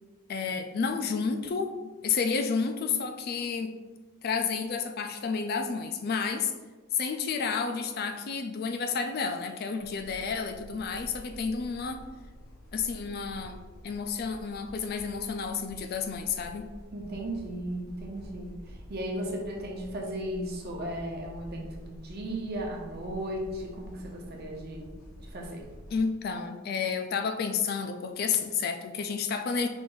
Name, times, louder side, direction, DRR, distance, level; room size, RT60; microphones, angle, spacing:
voice 1, 0.3-1.7 2.0-3.7 4.2-6.5 6.9-12.0 12.7-16.7 25.9-29.7, left 5 dB, 45° left, 6 dB, 0.3 m, -31 dB
sound 1, 9.8-26.0, equal, 75° left, 0.8 m, -48 dB
voice 2, 16.9-24.8 25.2-25.6, right 1 dB, 50° right, -1 dB, 0.8 m, -36 dB
5.0 x 2.6 x 3.7 m, 1.3 s
head